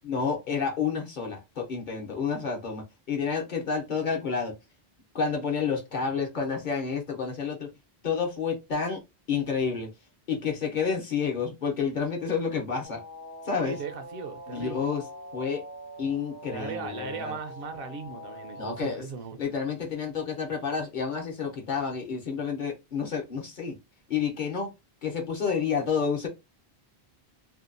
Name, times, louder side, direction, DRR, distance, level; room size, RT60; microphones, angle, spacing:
voice 1, 0.0-4.5 5.1-7.7 8.0-9.0 9.3-9.9 10.3-13.0 13.4-13.8 14.5-15.0 15.3-15.6 16.0-17.4 18.6-19.0 19.4-23.8 24.1-24.7 25.0-26.3, left 6 dB, 55° left, 0.8 m, -29 dB
sound 1, 12.8-18.8, equal, 20° left, 0.5 m, -43 dB
voice 2, 13.6-14.9 16.5-19.4, right 5 dB, 70° right, 0.7 m, -38 dB
2.7 x 2.2 x 2.5 m
omnidirectional pair, 1.0 m